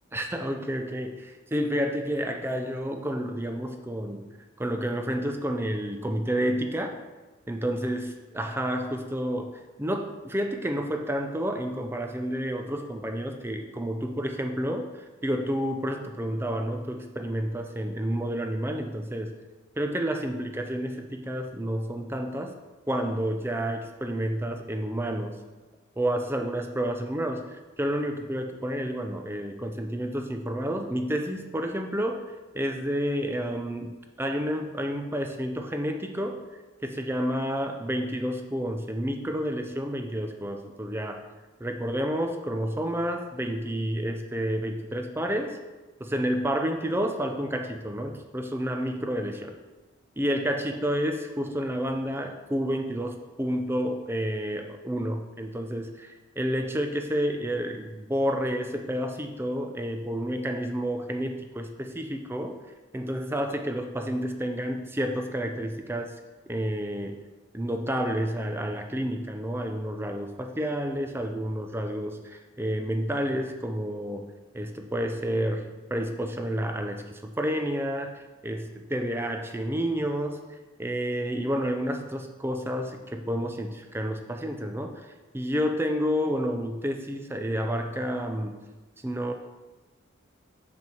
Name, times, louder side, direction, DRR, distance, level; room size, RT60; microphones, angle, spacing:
voice 1, 0.1-4.2 4.6-7.0 7.5-8.1 8.3-19.3 19.8-22.5 22.9-25.4 26.0-32.2 32.5-36.4 36.8-41.2 41.6-45.6 46.0-49.5 50.2-62.6 62.9-66.1 66.5-67.2 67.5-74.3 74.5-85.0 85.3-88.6 89.0-89.3, equal, 10° right, 5 dB, 0.5 m, -30 dB
6.2 x 6.1 x 4.5 m, 1.2 s
head